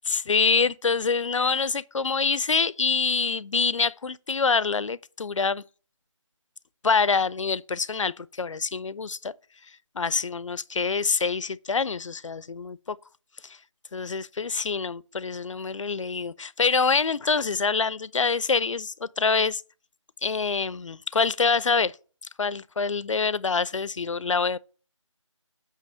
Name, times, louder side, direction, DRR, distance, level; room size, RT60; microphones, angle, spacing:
voice 1, 0.1-5.6 6.8-9.3 10.0-13.0 13.4-13.6 13.9-19.6 20.2-21.9 22.4-24.6, left 5 dB, 70° left, 0.4 m, -25 dB
8.3 x 3.0 x 6.0 m
figure-of-eight pair, 165°, 17 cm